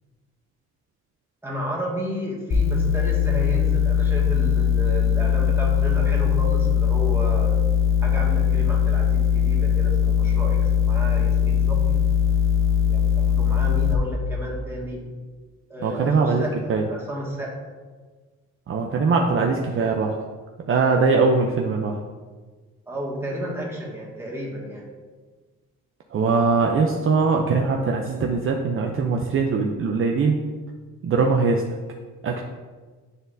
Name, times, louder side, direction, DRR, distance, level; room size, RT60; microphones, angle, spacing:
voice 1, 1.4-7.5 8.0-12.0 12.9-15.0 15.7-17.5 22.9-24.9, equal, 10° right, -4 dB, 1.8 m, -32 dB
sound 1, 2.5-13.9, left 8 dB, 45° left, 0.8 m, -20 dB
voice 2, 15.8-16.4 16.7-16.8 18.7-20.2 20.7-22.0 26.1-30.4 31.0-31.6 32.2-32.4, right 4 dB, 45° right, 1 dB, 0.6 m, -21 dB
9.4 x 4.0 x 2.6 m, 1.4 s
cardioid pair, 90°, 30 cm